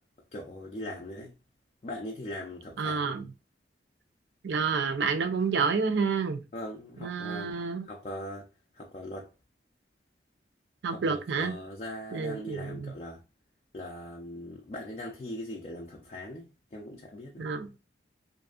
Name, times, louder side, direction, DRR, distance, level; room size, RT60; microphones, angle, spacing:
voice 1, 0.3-1.3 1.8-3.1 6.5-7.5 7.8-8.5 8.7-9.3 10.9-13.2 13.7-17.5, left 1 dB, 35° left, 0.4 m, -40 dB
voice 2, 2.8-3.3 4.4-6.4 7.0-7.9 10.8-11.5 12.1-12.9 17.4-17.7, right 5 dB, 70° right, 0.4 m, -29 dB
2.6 x 2.4 x 2.3 m
head